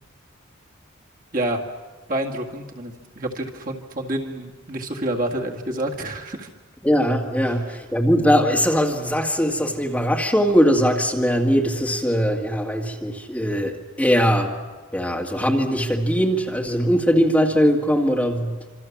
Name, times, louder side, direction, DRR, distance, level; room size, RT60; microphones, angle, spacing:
voice 1, 2.1-6.5, right 1 dB, 40° right, 0 dB, 2.0 m, -28 dB
voice 2, 6.8-14.5 14.9-18.5, equal, 5° left, 0 dB, 2.1 m, -20 dB
27.0 x 26.0 x 7.3 m, 1.3 s
head